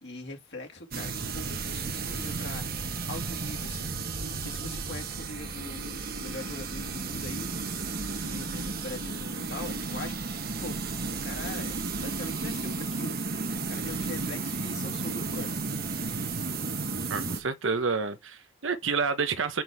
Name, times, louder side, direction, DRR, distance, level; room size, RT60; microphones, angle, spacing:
voice 1, 0.0-4.0 4.3-7.5 8.1-10.8 11.2-13.3 13.7-15.6, left 2 dB, 60° left, 2.3 m, -42 dB
sound 1, 0.9-17.4, right 4 dB, 50° right, 1.1 m, -33 dB
voice 2, 17.1-19.6, right 5 dB, 80° right, 1.0 m, -29 dB
6.3 x 5.9 x 3.5 m
head